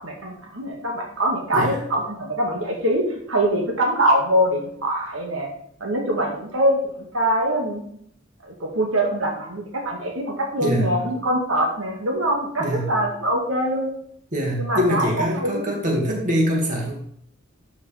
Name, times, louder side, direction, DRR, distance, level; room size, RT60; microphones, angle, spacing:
voice 1, 0.0-5.5 5.8-7.8 8.4-13.9 14.6-15.8, right 1 dB, 85° right, 0 dB, 2.0 m, -23 dB
voice 2, 10.6-10.9 12.6-13.0 14.3-16.9, equal, 40° right, -1 dB, 2.1 m, -23 dB
12.0 x 6.4 x 3.5 m, 0.67 s
head